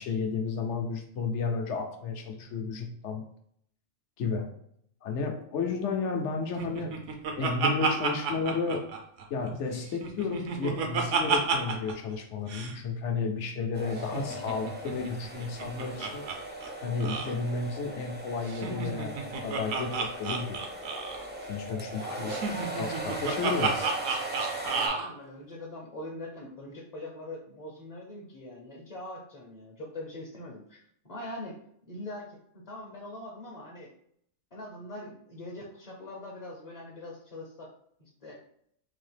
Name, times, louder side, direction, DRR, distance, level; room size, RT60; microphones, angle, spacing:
voice 1, 0.0-3.2 4.2-4.5 5.0-7.0 7.4-8.9 9.3-16.3 16.8-19.2 19.4-20.6 21.5-22.4 22.8-23.9, left 4 dB, 70° left, 4 dB, 0.9 m, -32 dB
Laughter, 6.6-9.5 9.8-11.9 12.2-12.3 12.5-12.7 14.0-16.4 16.6-16.7 17.0-17.3 18.5-21.3 22.3-25.1, right 5 dB, 75° right, 1.0 m, -31 dB
sound 1, 13.7-24.9, right 1 dB, 10° right, 0.5 m, -39 dB
voice 2, 22.0-22.6 24.6-31.6 31.9-33.9 34.5-37.7 38.0-38.4, left 1 dB, 40° left, -3 dB, 0.7 m, -42 dB
3.9 x 2.8 x 3.3 m, 0.68 s
omnidirectional pair, 1.3 m